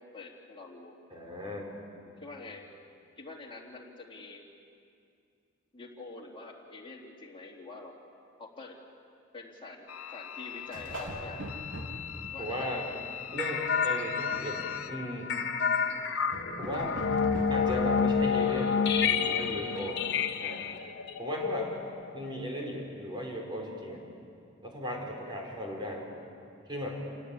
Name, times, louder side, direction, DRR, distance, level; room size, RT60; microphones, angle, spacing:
voice 1, 0.0-0.9 2.2-2.7 3.2-4.4 5.7-7.9 8.4-8.8 9.3-11.6 12.2-13.0 15.8-16.1, left 3 dB, 25° left, -3 dB, 3.3 m, -46 dB
voice 2, 1.1-1.7 12.4-12.8 13.3-15.3 16.6-17.0 17.5-20.0 20.4-20.7 21.2-21.7 22.1-24.0 24.6-26.1 26.7-27.0, equal, 20° right, -1 dB, 5.0 m, -36 dB
sound 1, 9.9-14.9, left 9 dB, 85° left, 0.7 m, -42 dB
sound 2, 10.3-12.9 13.3-13.7 14.2-14.4 15.0-15.3 16.3-17.9 18.5-18.6 18.9-19.0 19.3-19.6, equal, 65° right, 3.7 m, -42 dB
sound 3, 13.4-22.3, left 6 dB, 55° left, 1.4 m, -29 dB
28.0 x 18.5 x 8.6 m, 2.4 s
head